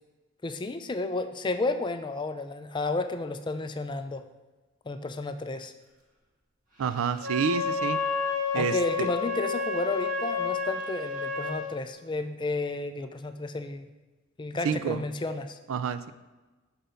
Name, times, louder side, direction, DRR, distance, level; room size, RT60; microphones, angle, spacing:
voice 1, 0.4-4.2 4.9-5.7 8.5-13.9 14.4-15.6, left 2 dB, 20° left, 8 dB, 0.4 m, -32 dB
voice 2, 6.8-8.0 8.5-9.1 14.6-15.0 15.7-16.1, right 6 dB, 80° right, 12 dB, 0.4 m, -28 dB
Wind instrument woodwind instrument, 7.2-11.6, left 4 dB, 45° right, 1.3 m, -30 dB
6.7 x 5.5 x 3.9 m, 1.2 s
head